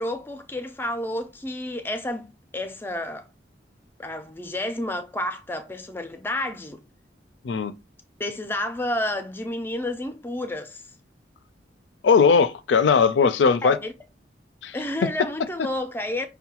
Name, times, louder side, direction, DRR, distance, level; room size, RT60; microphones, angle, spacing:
voice 1, 0.0-2.3 2.5-3.3 4.0-6.8 8.2-10.8 13.2-13.3 13.6-13.9 14.7-16.3, left 1 dB, 10° left, 0.4 m, -30 dB
voice 2, 12.0-13.8 14.6-14.7, left 5 dB, 75° left, 0.4 m, -19 dB
5.4 x 2.2 x 2.9 m
head